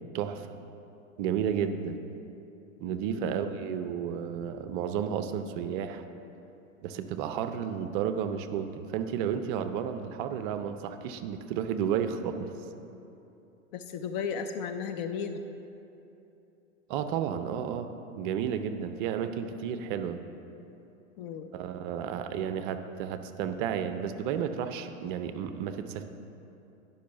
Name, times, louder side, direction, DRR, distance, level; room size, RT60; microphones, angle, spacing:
voice 1, 0.1-0.6 1.2-2.0 2.8-6.0 6.8-12.5 16.9-17.9 18.2-20.2 21.5-26.0, right 8 dB, 40° right, 9 dB, 0.6 m, -32 dB
voice 2, 13.7-15.4 21.2-21.5, left 6 dB, 35° left, 7 dB, 0.4 m, -35 dB
10.5 x 5.5 x 5.6 m, 2.9 s
figure-of-eight pair, 95°, 39 cm